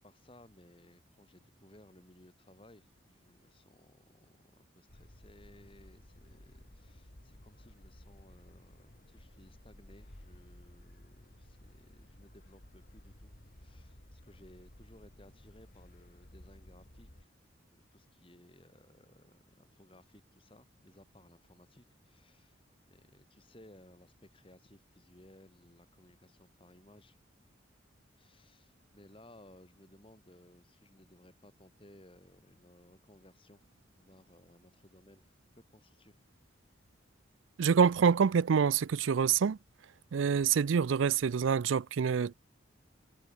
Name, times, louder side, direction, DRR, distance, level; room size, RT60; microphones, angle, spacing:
voice 1, 0.0-13.3 13.6-17.3 17.7-22.6 22.9-27.2 28.1-36.2, left 1 dB, 25° left, 2.5 m, -60 dB
sound 1, 4.9-17.2, left 1 dB, 50° left, 2.6 m, -56 dB
voice 2, 37.6-39.6 40.1-42.3, right 6 dB, 85° right, 0.4 m, -26 dB
head